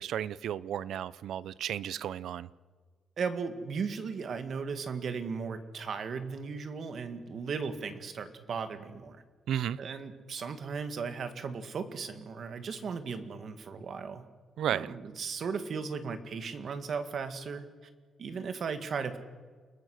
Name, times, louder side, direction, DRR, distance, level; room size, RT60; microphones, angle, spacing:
voice 1, 0.0-2.5 9.5-9.8 14.6-14.9, right 10 dB, 80° right, 0.6 m, -33 dB
voice 2, 3.2-9.2 9.8-14.3 14.7-17.7 18.2-19.2, right 5 dB, 50° right, 2.0 m, -36 dB
30.0 x 19.5 x 6.5 m
wide cardioid pair, 160°, 0 cm